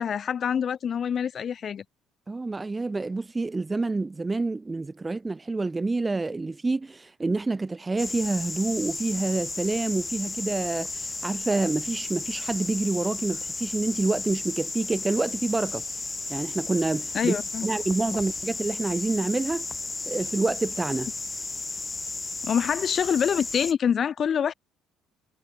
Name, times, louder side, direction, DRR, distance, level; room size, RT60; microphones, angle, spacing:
voice 1, 0.0-1.8 17.1-17.7 22.4-24.5, left 8 dB, 45° left, 2.6 m, -26 dB
voice 2, 2.3-15.8 16.3-17.4 17.6-19.7 20.1-21.1, right 3 dB, 20° right, 5.9 m, -27 dB
sound 1, 8.0-23.7, left 3 dB, 20° left, 3.5 m, -34 dB
cardioid pair, 105°, 0 cm